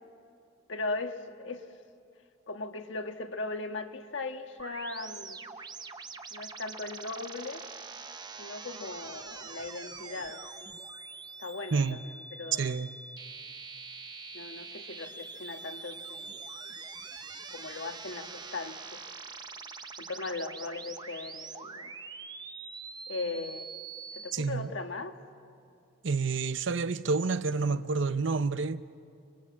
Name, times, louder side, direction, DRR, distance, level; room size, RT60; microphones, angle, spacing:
voice 1, 0.7-1.7 2.5-5.4 6.3-7.7 8.4-10.4 11.4-12.7 14.3-16.4 17.5-19.0 20.0-21.9 23.1-23.7 24.1-25.2, left 3 dB, 70° left, 1.5 m, -38 dB
sound 1, 4.6-24.3, right 4 dB, 20° right, 0.8 m, -44 dB
voice 2, 12.6-12.9 24.3-24.7 26.0-28.8, right 4 dB, 65° right, 0.7 m, -29 dB
29.5 x 23.5 x 8.4 m
head